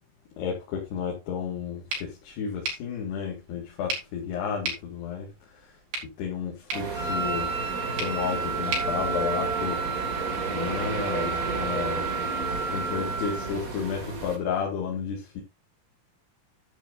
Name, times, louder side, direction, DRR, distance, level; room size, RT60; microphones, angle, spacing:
voice 1, 0.4-5.3 6.2-7.5 8.0-10.1 10.4-12.1 12.7-15.4, left 7 dB, 75° left, 4.0 m, -32 dB
sound 1, 1.9-9.9, right 3 dB, 60° right, 5.6 m, -38 dB
sound 2, 6.7-14.4, right 3 dB, 35° right, 1.4 m, -32 dB
Wind instrument woodwind instrument, 6.9-13.5, right 5 dB, 45° left, 5.2 m, -32 dB
11.0 x 10.0 x 2.6 m
omnidirectional pair, 4.9 m